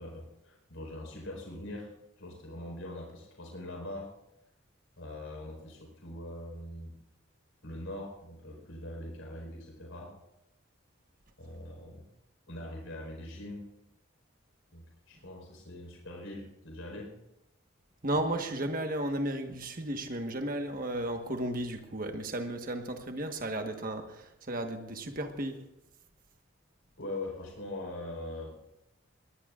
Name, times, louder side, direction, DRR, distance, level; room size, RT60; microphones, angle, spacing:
voice 1, 0.0-1.9 2.2-4.1 5.0-6.9 7.6-10.1 11.4-12.1 12.5-13.6 14.7-17.1 27.0-28.6, left 1 dB, 80° left, 1 dB, 4.6 m, -42 dB
voice 2, 18.0-25.6, right 1 dB, 40° right, 5 dB, 1.4 m, -34 dB
21.5 x 19.0 x 2.5 m, 0.88 s
head